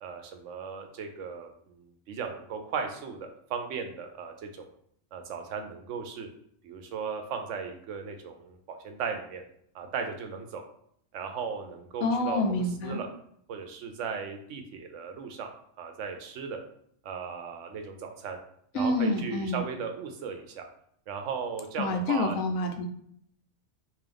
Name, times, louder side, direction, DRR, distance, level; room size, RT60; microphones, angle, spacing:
voice 1, 0.0-4.7 5.1-6.3 6.6-9.4 9.7-10.6 11.1-13.1 13.5-15.5 15.8-16.6 17.0-18.4 18.7-20.6 21.1-22.4, right 6 dB, 70° right, 5 dB, 0.9 m, -36 dB
voice 2, 12.0-13.0 18.7-19.7 21.8-22.9, left 2 dB, 85° left, 5 dB, 1.0 m, -28 dB
3.7 x 2.6 x 3.4 m, 0.68 s
omnidirectional pair, 1.4 m